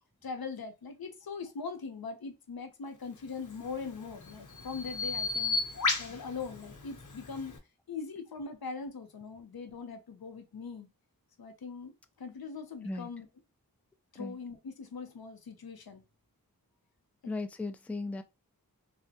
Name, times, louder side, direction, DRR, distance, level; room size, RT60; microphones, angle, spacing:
voice 1, 0.2-5.6 6.0-7.6 7.9-10.9 11.4-11.9 12.2-13.3 14.1-16.0 17.2-17.3, left 5 dB, 85° left, 0.7 m, -41 dB
Bird vocalization bird call bird song, 3.4-7.6, left 3 dB, 55° left, 0.8 m, -35 dB
voice 2, 17.2-18.2, left 3 dB, 5° left, 0.3 m, -36 dB
3.3 x 2.1 x 2.7 m
wide cardioid pair, 40°, 36 cm